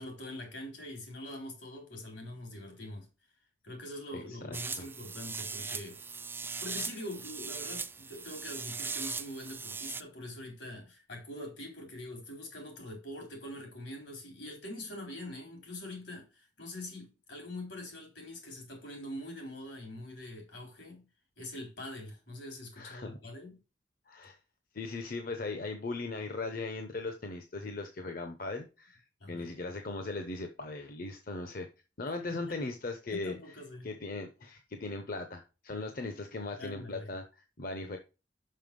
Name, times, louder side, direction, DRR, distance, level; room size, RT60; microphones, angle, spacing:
voice 1, 0.0-3.1 3.6-6.0 6.6-21.1 21.4-23.6 29.2-29.5 32.3-32.5 33.1-33.9 36.6-37.1, left 1 dB, 80° left, 3.7 m, -44 dB
voice 2, 4.1-4.9 22.7-23.1 24.1-24.4 24.7-31.7 32.0-33.4 33.8-38.0, left 3 dB, 50° left, 0.8 m, -38 dB
sound 1, 4.5-10.0, right 5 dB, 10° right, 0.3 m, -39 dB
6.0 x 5.6 x 5.2 m
head